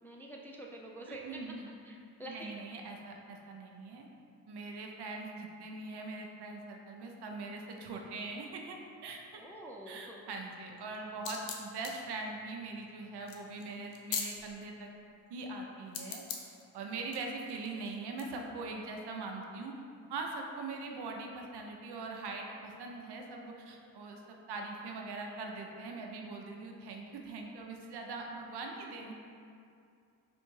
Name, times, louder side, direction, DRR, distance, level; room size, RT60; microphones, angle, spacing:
voice 1, 0.0-1.6 1.8-2.5 9.4-10.2, right 1 dB, 5° left, -1 dB, 0.3 m, -47 dB
voice 2, 1.1-1.7 2.2-4.1 4.5-9.4 9.9-14.9 15.3-16.2 16.7-19.7 20.1-29.1, right 3 dB, 60° right, 1 dB, 0.7 m, -42 dB
sound 1, 10.8-14.6 15.9-16.6 17.1-18.2, left 6 dB, 75° left, 0.6 m, -41 dB
3.5 x 2.6 x 4.6 m, 2.4 s
hypercardioid pair, 50°, 45 cm